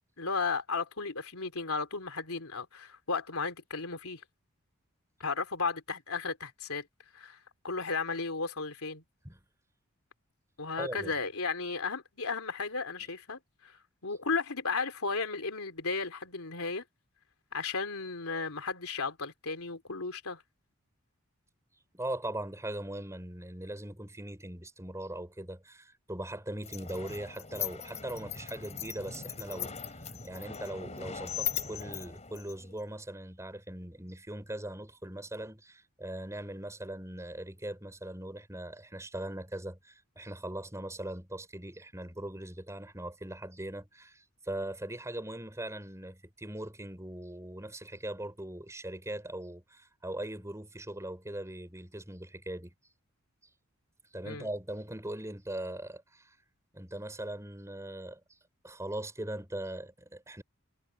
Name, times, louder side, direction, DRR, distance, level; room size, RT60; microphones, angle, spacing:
voice 1, 0.2-4.2 5.2-6.9 7.1-9.0 10.6-16.8 17.5-20.4 54.2-54.5, left 4 dB, 80° left, 3.3 m, -34 dB
voice 2, 10.8-11.1 21.9-29.7 30.2-52.7 54.1-56.3 56.7-58.2 58.6-60.4, right 1 dB, 15° right, 6.5 m, -40 dB
sound 1, 26.6-32.9, left 8 dB, 30° left, 4.4 m, -39 dB
head